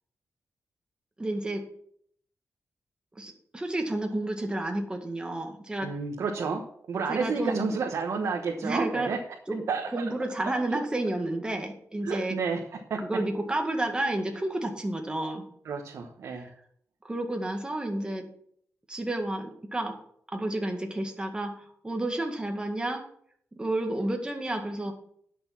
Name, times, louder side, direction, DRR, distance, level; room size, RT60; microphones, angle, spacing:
voice 1, 1.2-1.6 3.2-5.9 7.1-7.6 8.6-9.1 9.5-9.6 9.9-12.4 13.0-15.4 16.3-16.5 17.0-18.3 18.9-20.0 20.3-23.0 23.6-24.9, right 1 dB, 20° right, 3 dB, 2.0 m, -31 dB
voice 2, 5.8-6.6 6.9-9.2 9.7-10.8 12.0-12.8 15.7-16.4, right 5 dB, 80° right, 1 dB, 1.3 m, -31 dB
10.5 x 6.7 x 6.0 m, 0.66 s
wide cardioid pair, 100°, 5 cm